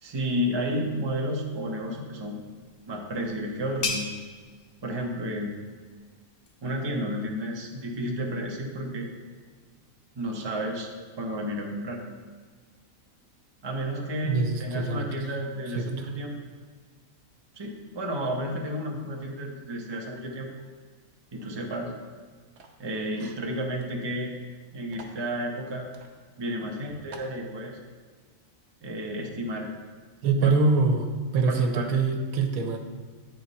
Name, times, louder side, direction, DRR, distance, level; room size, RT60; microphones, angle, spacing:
voice 1, 0.0-2.4 2.9-4.1 4.8-5.6 6.6-9.1 10.2-10.9 11.2-12.0 13.6-16.4 17.6-20.5 21.3-21.9 22.8-24.3 24.7-25.9 26.4-27.8 28.8-29.7 30.4-30.5 31.5-31.9, equal, 25° right, 0 dB, 0.7 m, -31 dB
sound 1, 2.5-7.9, left 4 dB, 70° left, 1.1 m, -39 dB
voice 2, 14.2-15.2 15.8-16.1 23.2-23.3 30.2-32.8, right 3 dB, 85° right, 6 dB, 1.1 m, -25 dB
sound 2, 22.6-22.9 23.8-23.9 24.1-24.2 24.9-25.2 25.9-26.1 26.6-26.7 27.1-27.4, right 4 dB, 60° right, 0.9 m, -47 dB
9.3 x 3.6 x 4.1 m, 1.5 s
omnidirectional pair, 1.4 m